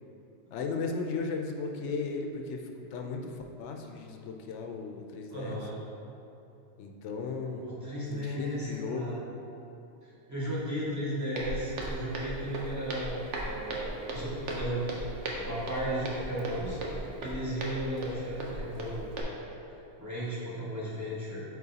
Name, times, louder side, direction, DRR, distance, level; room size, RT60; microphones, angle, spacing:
voice 1, 0.5-5.6 6.8-7.7 8.1-9.1, left 4 dB, 85° left, 3 dB, 0.9 m, -36 dB
voice 2, 5.3-5.7 7.6-9.3 10.3-14.8 15.4-19.1 20.0-21.4, equal, 15° right, -9 dB, 1.5 m, -35 dB
Walk footsteps, 11.4-19.2, right 1 dB, 90° right, 1.1 m, -37 dB
8.3 x 4.2 x 2.8 m, 2.9 s
omnidirectional pair, 1.2 m